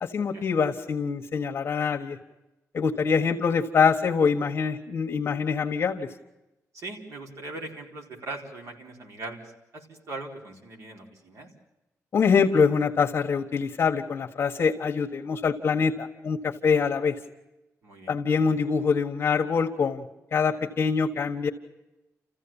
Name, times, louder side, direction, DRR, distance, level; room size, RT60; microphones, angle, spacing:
voice 1, 0.0-2.2 2.7-6.1 12.1-17.1 18.1-20.1 20.3-21.5, left 5 dB, 45° left, 2 dB, 1.5 m, -24 dB
voice 2, 6.7-9.4 9.7-11.5 17.8-18.1, right 2 dB, 60° right, 2 dB, 4.6 m, -40 dB
29.5 x 15.0 x 8.9 m, 0.97 s
wide cardioid pair, 170°, 6 cm